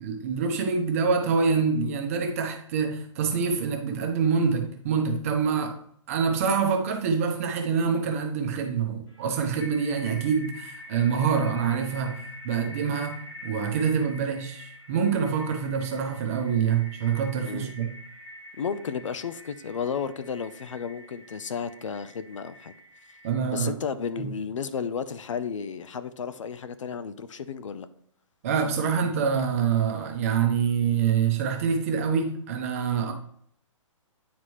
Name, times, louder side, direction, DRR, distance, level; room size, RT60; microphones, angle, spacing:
voice 1, 0.0-5.8 6.1-17.9 23.2-23.7 24.2-24.3 28.4-33.1, right 6 dB, 25° right, 0.8 m, -26 dB
sound 1, 9.1-23.4, left 1 dB, 50° left, 2.0 m, -46 dB
voice 2, 18.6-22.7 23.1-23.2 23.5-27.9, left 6 dB, 70° left, 0.6 m, -33 dB
9.5 x 4.1 x 3.1 m
hypercardioid pair, 165°, 17 cm